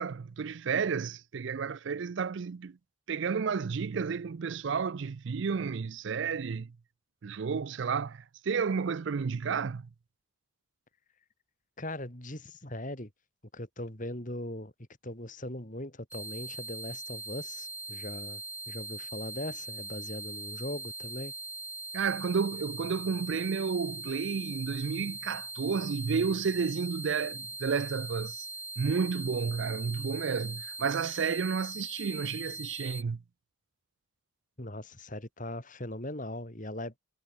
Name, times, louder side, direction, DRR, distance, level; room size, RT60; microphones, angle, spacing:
voice 1, 0.0-2.8 3.1-6.7 7.2-9.9 21.9-28.5 28.8-33.2, right 5 dB, 55° right, 0.4 m, -31 dB
voice 2, 11.8-13.1 13.5-14.7 15.0-21.3 34.6-36.9, left 1 dB, 35° left, 3.8 m, -39 dB
sound 1, 16.1-33.0, right 2 dB, 10° right, 2.5 m, -41 dB
head